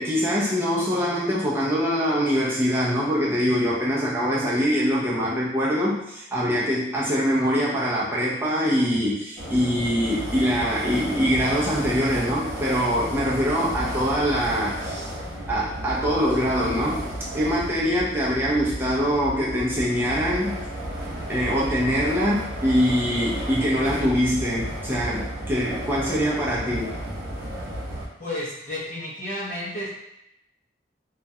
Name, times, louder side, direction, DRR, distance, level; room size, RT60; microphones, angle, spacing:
voice 1, 0.0-15.1 15.5-20.6 21.3-26.9, equal, 10° right, -6 dB, 0.4 m, -23 dB
sound 1, 9.4-28.1, equal, 50° right, 0.7 m, -33 dB
voice 2, 28.2-29.9, left 1 dB, 40° left, -8 dB, 0.6 m, -31 dB
2.3 x 2.1 x 2.7 m, 0.84 s
head